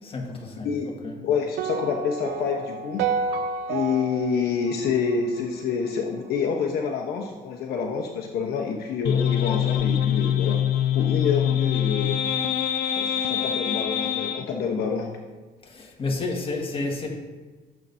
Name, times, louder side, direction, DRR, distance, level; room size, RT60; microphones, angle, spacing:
voice 1, 0.0-1.3 13.1-13.2 15.6-17.2, left 3 dB, 35° left, 1.8 m, -31 dB
voice 2, 1.2-3.0 3.7-10.6 10.9-12.2 12.9-15.1, left 6 dB, 70° left, 1.0 m, -27 dB
sound 1, 1.6-5.9, right 5 dB, 80° right, 0.7 m, -30 dB
sound 2, 9.0-14.5, left 9 dB, 90° left, 0.7 m, -24 dB
15.0 x 7.4 x 2.7 m
cardioid pair, 110°, 17 cm